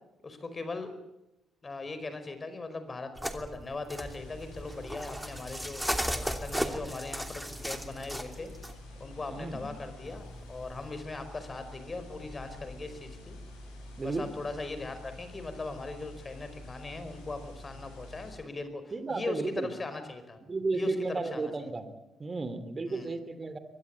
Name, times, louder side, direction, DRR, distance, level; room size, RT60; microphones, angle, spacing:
voice 1, 0.2-0.9 1.6-5.8 6.2-8.5 9.0-13.4 14.0-20.4 20.7-21.5 22.9-23.1, left 3 dB, 30° left, 10 dB, 5.0 m, -39 dB
sound 1, 3.2-8.7 10.1-10.9, equal, 5° right, 2.9 m, -36 dB
sound 2, 3.9-18.4, left 1 dB, 80° left, 7.9 m, -48 dB
voice 2, 9.3-9.7 14.0-14.3 18.9-19.7 20.4-21.9 22.2-23.6, right 3 dB, 35° right, 12 dB, 3.1 m, -33 dB
23.5 x 19.0 x 8.4 m, 0.93 s
hypercardioid pair, 45°, 0 cm